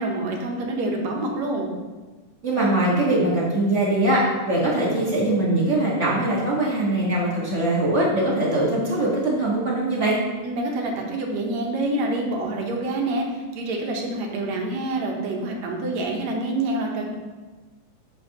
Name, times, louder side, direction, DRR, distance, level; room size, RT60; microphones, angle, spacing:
voice 1, 0.0-1.7 10.4-17.1, right 2 dB, 70° right, 0 dB, 2.1 m, -27 dB
voice 2, 2.4-10.2, right 1 dB, 45° right, -6 dB, 0.9 m, -22 dB
8.0 x 7.8 x 2.9 m, 1.3 s
omnidirectional pair, 3.6 m